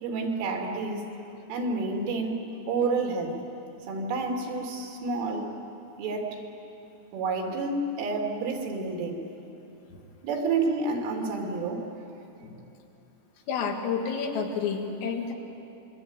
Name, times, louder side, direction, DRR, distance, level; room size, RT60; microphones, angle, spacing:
voice 1, 0.0-1.0 1.5-2.4 2.7-3.4 3.9-5.5 6.0-6.4 7.1-9.2 10.2-11.9, right 3 dB, 75° right, 1 dB, 5.2 m, -29 dB
voice 2, 13.5-15.3, left 6 dB, 85° left, 2 dB, 4.8 m, -30 dB
26.0 x 24.0 x 8.9 m, 3.0 s
omnidirectional pair, 5.8 m